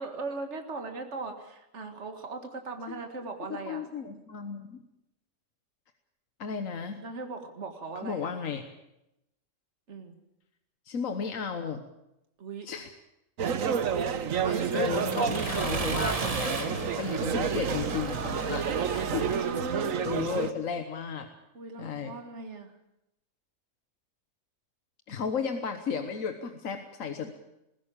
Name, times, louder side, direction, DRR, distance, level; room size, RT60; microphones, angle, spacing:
voice 1, 0.0-3.9 7.0-8.3 9.9-10.2 12.4-12.7 19.1-20.1 21.5-22.7, right 3 dB, 60° right, 5 dB, 2.2 m, -39 dB
voice 2, 3.5-4.8 6.4-7.0 8.0-8.6 10.9-11.8 12.7-12.9 14.4-19.3 20.0-21.3 21.8-22.2 25.1-27.4, left 6 dB, 85° left, 7 dB, 1.6 m, -34 dB
sound 1, 13.4-20.5, right 7 dB, 90° right, 1.5 m, -29 dB
Accelerating revving vroom, 14.1-19.4, right 3 dB, 30° right, 1.4 m, -36 dB
20.5 x 16.0 x 8.8 m, 0.87 s
omnidirectional pair, 1.3 m